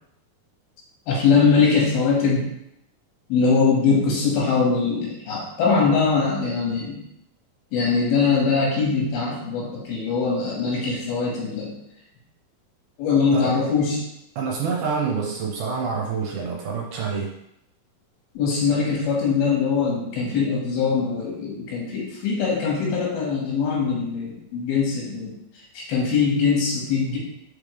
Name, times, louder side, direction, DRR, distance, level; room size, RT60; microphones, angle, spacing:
voice 1, 1.1-2.4 3.3-7.0 7.7-11.7 13.0-14.0 18.3-25.3 25.7-27.2, left 5 dB, 90° left, -3 dB, 3.4 m, -22 dB
voice 2, 14.4-17.3, right 5 dB, 75° right, -1 dB, 2.0 m, -27 dB
5.4 x 5.3 x 3.3 m, 0.81 s
omnidirectional pair, 4.3 m